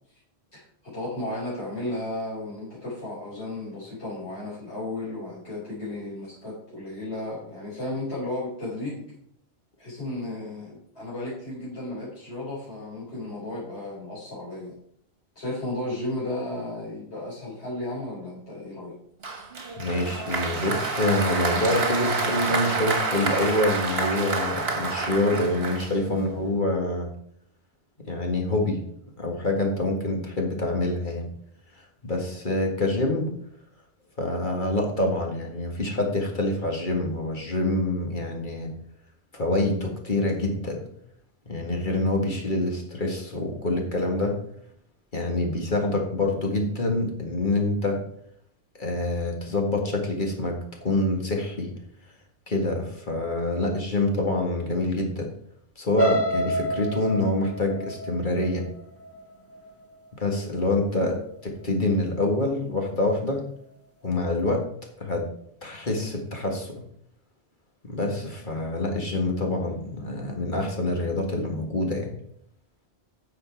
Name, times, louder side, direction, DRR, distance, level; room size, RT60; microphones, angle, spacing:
voice 1, 0.5-9.1 9.8-14.7 15.4-19.0 61.0-61.2, left 1 dB, 80° left, -9 dB, 4.4 m, -34 dB
Applause, 19.2-26.3, right 3 dB, 70° right, 1.8 m, -28 dB
voice 2, 19.8-27.1 28.1-28.8 29.2-31.3 32.0-33.3 34.2-38.7 39.3-40.8 41.5-44.4 45.1-48.0 48.8-50.6 50.8-51.7 52.5-55.3 55.8-58.6 60.2-61.2 61.6-63.5 64.0-64.6 65.0-65.2 65.6-66.8 67.8-72.1, left 2 dB, 50° left, 1 dB, 2.1 m, -26 dB
sound 1, 56.0-59.9 60.4-60.7 61.1-61.2, left 1 dB, 15° left, 1.2 m, -29 dB
10.5 x 6.5 x 4.7 m, 0.67 s
omnidirectional pair, 1.1 m